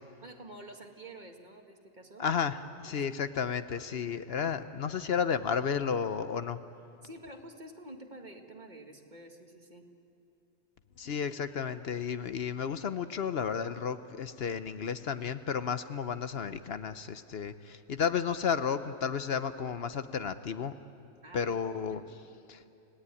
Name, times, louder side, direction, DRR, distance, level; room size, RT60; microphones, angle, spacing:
voice 1, 0.2-2.3 2.8-3.2 7.0-9.9 21.2-22.0, right 1 dB, 40° right, 3 dB, 2.1 m, -49 dB
voice 2, 2.2-6.6 11.0-20.7 21.3-22.0 22.5-22.6, left 7 dB, 65° left, 11 dB, 1.0 m, -32 dB
28.5 x 17.5 x 9.8 m, 2.8 s
omnidirectional pair, 1.2 m